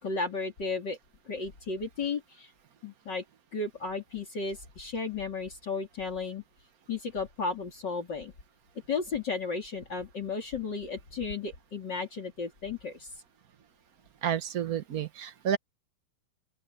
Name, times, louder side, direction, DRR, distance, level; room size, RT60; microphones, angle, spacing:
voice 1, 0.0-1.0 1.3-2.5 2.8-3.2 3.5-6.4 6.9-8.3 8.9-13.1, left 4 dB, 55° left, 3.7 m, -34 dB
voice 2, 14.2-15.6, right 8 dB, 55° right, 1.1 m, -30 dB
open air
omnidirectional pair, 2.3 m